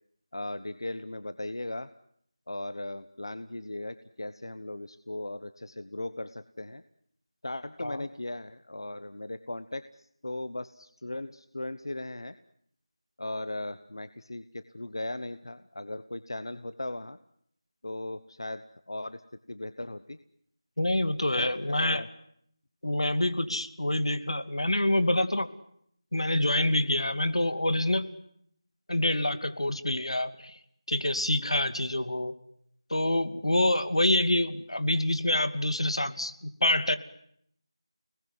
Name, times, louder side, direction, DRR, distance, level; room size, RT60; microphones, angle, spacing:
voice 1, 0.3-1.9 2.5-6.8 7.4-12.3 13.2-17.2 17.8-19.2 19.5-20.2 21.4-22.1 23.5-23.6, left 1 dB, 50° left, 13 dB, 1.1 m, -38 dB
voice 2, 20.8-22.0 22.8-25.5 26.1-28.1 28.9-30.6 30.9-32.3 32.9-37.0, left 1 dB, 75° left, 11 dB, 2.6 m, -26 dB
29.5 x 20.5 x 9.7 m, 0.70 s
figure-of-eight pair, 180°, 3 cm